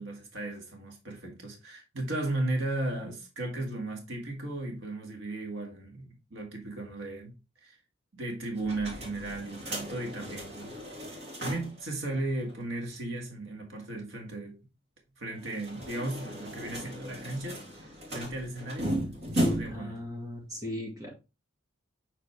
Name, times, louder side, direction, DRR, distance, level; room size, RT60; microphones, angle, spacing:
voice 1, 0.0-7.8 8.1-10.7 11.1-14.6 15.2-18.9 19.3-20.0, right 2 dB, 70° right, 1.9 m, -36 dB
sound 1, 8.6-11.8 12.1-12.2 12.5-12.6 15.3-19.9, equal, 55° right, 2.9 m, -35 dB
voice 2, 19.7-21.1, left 1 dB, 15° right, 1.8 m, -38 dB
7.7 x 4.2 x 3.3 m
head